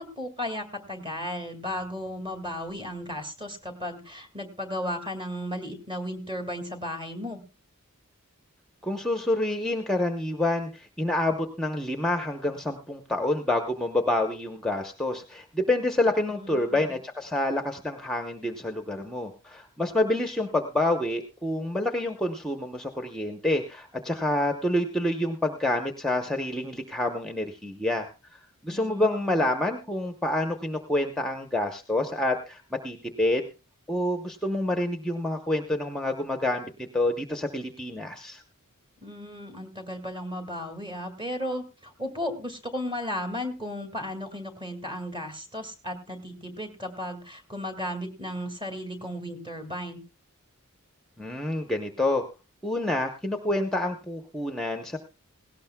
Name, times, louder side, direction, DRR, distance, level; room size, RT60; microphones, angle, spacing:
voice 1, 0.0-7.4 16.3-16.9 28.7-29.4 39.0-50.0, equal, 25° right, 5 dB, 2.0 m, -35 dB
voice 2, 8.8-33.5 33.9-38.4 51.2-52.2 52.6-55.0, left 1 dB, 5° left, 5 dB, 0.8 m, -28 dB
17.5 x 17.0 x 2.2 m, 0.29 s
head